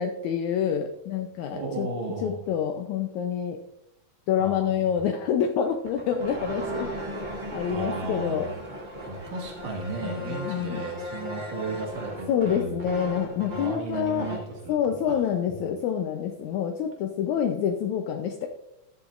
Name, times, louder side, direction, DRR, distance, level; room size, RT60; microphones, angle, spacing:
voice 1, 0.0-1.9 2.2-3.6 4.3-6.9 7.5-8.5 10.0-10.9 12.3-14.3 14.7-18.5, left 8 dB, 75° left, 4 dB, 2.0 m, -27 dB
voice 2, 1.5-2.4 4.4-5.1 7.7-8.5 9.1-15.2 15.5-15.6, right 3 dB, 80° right, -1 dB, 3.5 m, -35 dB
sound 1, 5.7-14.5, equal, 20° right, 1.4 m, -37 dB
13.5 x 11.0 x 2.5 m, 0.85 s
omnidirectional pair, 3.7 m